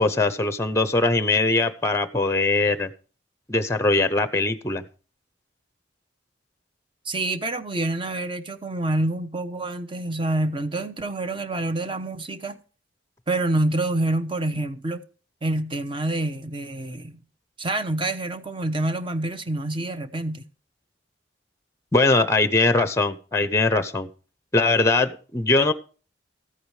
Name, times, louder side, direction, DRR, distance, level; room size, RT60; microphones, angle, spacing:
voice 1, 0.0-2.9 3.5-4.8 21.9-24.1 24.5-25.7, left 3 dB, 15° left, 0.7 m, -21 dB
voice 2, 7.0-12.6 13.3-15.0 15.4-17.2 17.6-20.5, right 2 dB, 25° right, 0.9 m, -27 dB
14.0 x 8.6 x 4.8 m
head